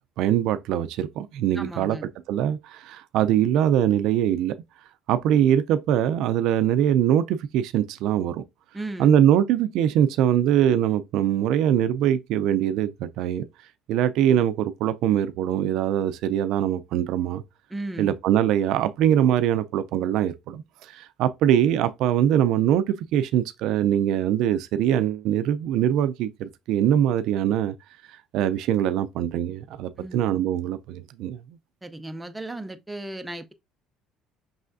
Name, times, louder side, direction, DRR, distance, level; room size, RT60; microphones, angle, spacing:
voice 1, 0.2-2.0 2.3-4.5 5.1-8.4 9.0-13.5 13.9-17.4 18.0-20.6 21.0-27.7 28.3-31.4, right 10 dB, 70° right, 0.4 m, -22 dB
voice 2, 1.5-2.1 8.7-9.1 17.7-18.1 30.0-30.2 31.8-33.5, right 1 dB, 10° right, 0.5 m, -35 dB
5.4 x 3.3 x 2.5 m
cardioid pair, 130°, 0 cm